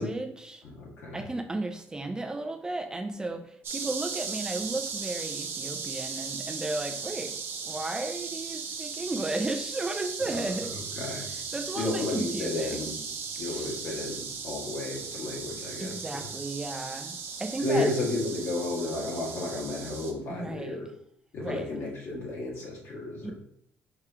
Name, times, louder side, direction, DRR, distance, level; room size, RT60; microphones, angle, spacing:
voice 1, 0.0-0.6 1.1-10.8 11.3-12.9 13.4-13.6 15.8-17.9 20.3-20.8 21.4-21.7 23.2-23.3, right 2 dB, 15° right, 5 dB, 0.4 m, -34 dB
voice 2, 0.6-1.2 10.3-10.4 11.0-11.3 11.8-13.0 13.4-16.3 17.6-20.9 21.3-23.3, left 2 dB, 65° left, -3 dB, 1.7 m, -32 dB
sound 1, 3.6-20.1, right 5 dB, 55° right, 0.7 m, -37 dB
4.8 x 3.5 x 2.8 m, 0.70 s
cardioid pair, 120°, 5 cm